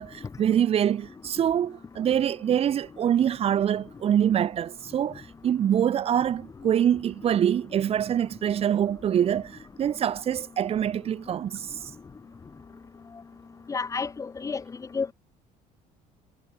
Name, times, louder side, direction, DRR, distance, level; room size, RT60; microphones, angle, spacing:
voice 1, 0.0-11.8, right 9 dB, 40° right, 4.8 m, -25 dB
voice 2, 13.7-14.6 14.9-15.1, left 5 dB, 20° left, 5.3 m, -30 dB
cardioid pair, 145°, 15 cm